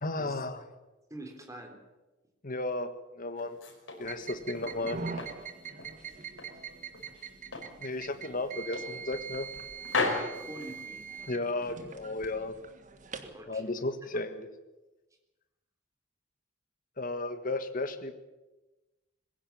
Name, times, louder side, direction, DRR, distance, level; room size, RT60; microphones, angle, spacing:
voice 1, 0.0-0.6 2.4-2.9 3.2-3.6 4.0-5.0 7.8-9.5 11.3-12.5 13.5-14.5 17.0-18.2, left 2 dB, 45° left, 9 dB, 1.7 m, -34 dB
voice 2, 1.1-1.8 10.1-11.1 13.2-13.6, right 1 dB, 15° right, 3 dB, 3.7 m, -44 dB
sound 1, 3.3-4.8 5.2-6.6 6.9-7.8 8.1-8.3 8.7-9.6 9.8-11.3, left 3 dB, 85° left, 5.0 m, -35 dB
sound 2, 4.0-13.4, right 5 dB, 40° right, 1.6 m, -43 dB
21.0 x 16.0 x 8.8 m, 1.1 s
head